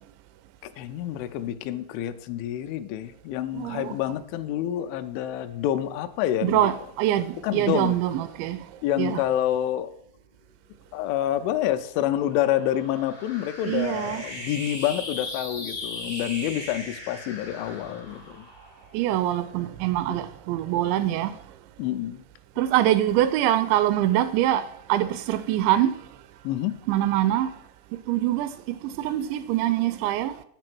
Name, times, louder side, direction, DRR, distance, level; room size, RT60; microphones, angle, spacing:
voice 1, 0.6-6.7 7.4-8.0 8.8-9.9 10.9-18.5 20.1-20.2 21.8-22.2 26.4-26.7, left 12 dB, 90° left, 3.1 m, -28 dB
voice 2, 3.5-3.9 6.4-8.7 9.0-9.2 13.7-14.2 18.9-21.4 22.6-26.0 26.9-27.5 28.1-30.4, right 13 dB, 85° right, 2.7 m, -24 dB
sound 1, 11.4-19.8, left 1 dB, 35° left, 0.5 m, -39 dB
10.5 x 7.7 x 6.0 m
omnidirectional pair, 5.4 m